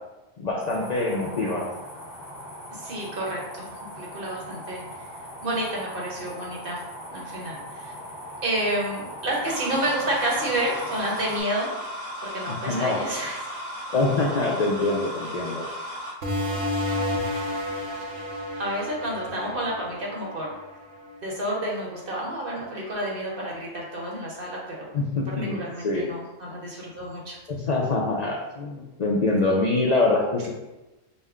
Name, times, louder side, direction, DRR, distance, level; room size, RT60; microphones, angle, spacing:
voice 1, 0.4-1.7 12.5-13.0 13.9-15.7 24.9-26.1 27.5-30.5, left 2 dB, 60° left, -2 dB, 0.4 m, -25 dB
sound 1, 0.6-11.4, equal, 35° left, 1.3 m, -40 dB
voice 2, 2.7-3.7 3.9-5.1 5.4-6.8 7.1-7.9 8.4-11.7 12.2-13.4 17.3-17.7 18.6-20.5 21.2-27.4, right 1 dB, 50° right, -3 dB, 1.1 m, -30 dB
sound 2, 9.5-16.1, equal, 25° right, 1.0 m, -35 dB
sound 3, 16.2-21.4, left 1 dB, 80° right, 1.3 m, -31 dB
5.4 x 2.1 x 3.5 m, 1.0 s
omnidirectional pair, 1.3 m